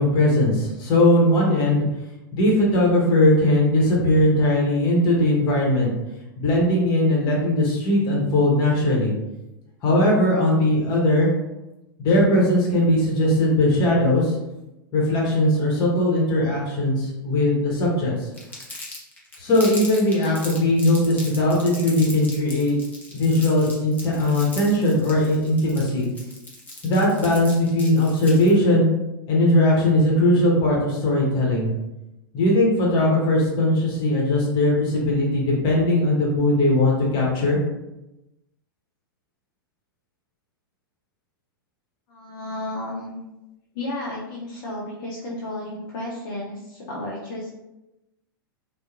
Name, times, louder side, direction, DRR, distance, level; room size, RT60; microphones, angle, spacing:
voice 1, 0.0-1.8 2.3-5.9 6.4-9.1 9.8-11.3 12.0-14.4 14.9-18.3 19.4-22.8 23.1-26.1 26.8-28.9 29.3-31.7 32.3-37.6, left 1 dB, 35° left, -3 dB, 1.0 m, -19 dB
Crumpling crinkling, 18.3-28.6, left 2 dB, 15° left, 0.7 m, -38 dB
voice 2, 42.1-43.2 43.7-47.5, left 1 dB, 60° left, -5 dB, 0.7 m, -32 dB
2.8 x 2.2 x 2.4 m, 0.95 s
hypercardioid pair, 105°, 12 cm